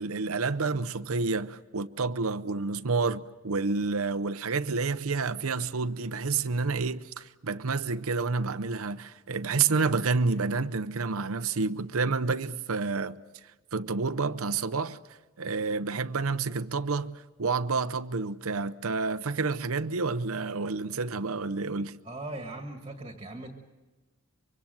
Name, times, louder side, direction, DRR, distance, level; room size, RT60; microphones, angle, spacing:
voice 1, 0.0-13.2 13.7-15.0 15.4-17.1 17.4-22.0, right 4 dB, 75° right, 0.7 m, -29 dB
voice 2, 22.0-23.5, right 2 dB, 25° right, 1.6 m, -39 dB
25.0 x 24.0 x 7.7 m
head